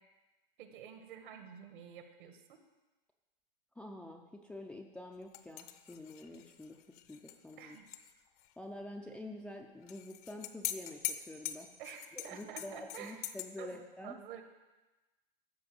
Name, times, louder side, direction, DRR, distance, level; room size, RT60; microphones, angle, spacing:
voice 1, 0.6-2.6 7.6-7.9 11.8-14.4, right 8 dB, 60° right, 7 dB, 1.6 m, -49 dB
voice 2, 3.8-7.8 8.6-11.7 12.1-14.2, left 1 dB, 5° left, 2 dB, 0.4 m, -47 dB
sound 1, 5.3-8.1 8.4-8.5 9.9-13.5, left 12 dB, 40° left, 0.7 m, -43 dB
13.5 x 4.7 x 7.7 m, 1.1 s
hypercardioid pair, 135°, 29 cm